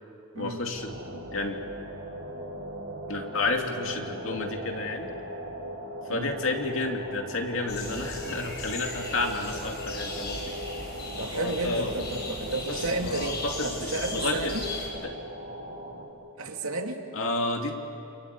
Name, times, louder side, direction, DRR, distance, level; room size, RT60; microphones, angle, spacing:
voice 1, 0.4-1.6 3.1-5.1 6.1-10.5 11.3-12.0 12.7-14.5 15.0-15.1 17.1-17.7, left 2 dB, 65° left, 3 dB, 2.7 m, -31 dB
sound 1, 0.7-16.1, right 1 dB, 55° right, 6.9 m, -39 dB
sound 2, 7.7-14.9, left 2 dB, 50° left, 6.7 m, -37 dB
voice 2, 11.2-14.7 16.4-17.1, right 2 dB, 85° right, 3 dB, 2.6 m, -32 dB
29.0 x 24.5 x 8.4 m, 2.8 s
head